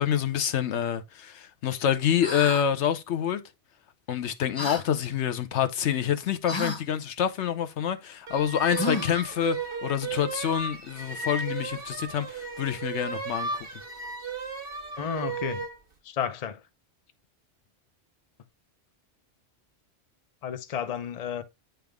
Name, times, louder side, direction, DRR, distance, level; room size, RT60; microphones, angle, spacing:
voice 1, 0.0-3.4 4.1-9.6 9.8-13.7, left 9 dB, 80° left, 1.0 m, -27 dB
sound 1, 2.2-2.6 4.6-4.8 6.5-6.8 8.7-9.2, left 2 dB, 25° left, 1.1 m, -31 dB
sound 2, 8.3-15.8, right 4 dB, 55° right, 1.1 m, -35 dB
voice 2, 15.0-15.7 16.0-16.6 20.4-21.4, left 8 dB, 40° left, 0.6 m, -32 dB
9.0 x 3.5 x 3.4 m
omnidirectional pair, 1.2 m